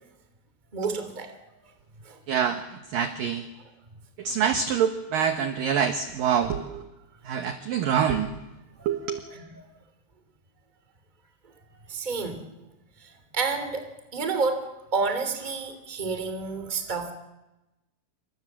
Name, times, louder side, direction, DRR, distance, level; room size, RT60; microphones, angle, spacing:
voice 1, 0.7-1.3 2.0-2.2 8.8-9.6 11.9-12.4 13.0-17.1, right 4 dB, 10° right, 8 dB, 2.2 m, -30 dB
voice 2, 2.3-2.6 2.9-3.4 4.2-6.8 7.3-8.3 8.9-9.2, right 7 dB, 65° right, 8 dB, 2.3 m, -25 dB
29.0 x 26.0 x 7.4 m, 1.0 s
omnidirectional pair, 5.5 m